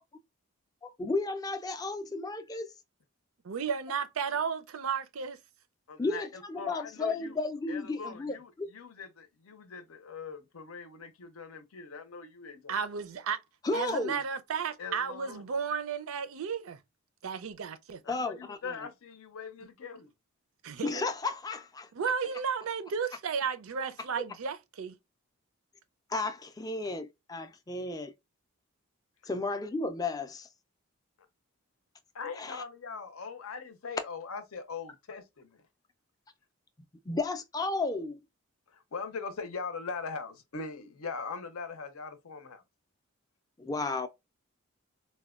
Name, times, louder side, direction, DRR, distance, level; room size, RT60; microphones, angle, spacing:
voice 1, 0.8-2.7 6.0-8.7 13.6-14.2 18.1-18.8 20.8-21.9 24.2-24.3 26.1-28.1 29.2-30.5 32.4-32.6 37.1-38.2 43.6-44.1, left 3 dB, 15° left, 0.3 m, -33 dB
voice 2, 3.5-5.4 12.7-13.4 13.7-16.8 17.2-18.0 20.6-21.0 21.9-25.0, right 6 dB, 75° right, 0.4 m, -33 dB
voice 3, 5.9-7.3 7.7-12.8 14.8-15.4 18.0-20.1 32.1-35.6 38.7-42.6, left 5 dB, 80° left, 0.6 m, -41 dB
4.1 x 2.1 x 2.3 m
head